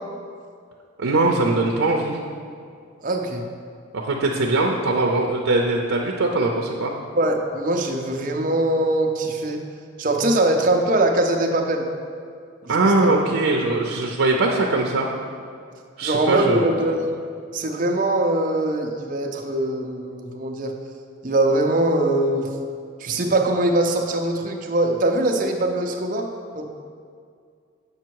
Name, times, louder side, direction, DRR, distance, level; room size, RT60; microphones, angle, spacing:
voice 1, 1.0-2.2 3.9-6.9 12.7-15.1 16.0-16.7, right 2 dB, 80° right, 0 dB, 0.6 m, -21 dB
voice 2, 3.0-3.4 7.2-9.6 10.0-11.9 12.8-13.1 16.0-17.2 17.5-20.7 21.2-22.5 23.0-26.3 26.5-26.6, right 1 dB, 40° right, 2 dB, 0.6 m, -22 dB
7.2 x 5.2 x 4.6 m, 2.2 s
head